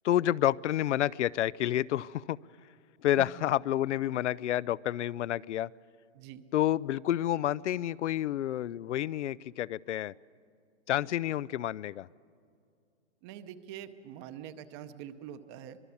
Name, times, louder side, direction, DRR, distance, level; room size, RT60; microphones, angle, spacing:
voice 1, 0.0-2.4 3.0-5.7 6.5-10.1 10.9-12.1, left 12 dB, 85° left, 21 dB, 0.5 m, -29 dB
voice 2, 13.2-15.8, right 10 dB, 25° right, 11 dB, 0.8 m, -44 dB
25.0 x 21.0 x 7.1 m, 2.4 s
hypercardioid pair, 155°, 35 cm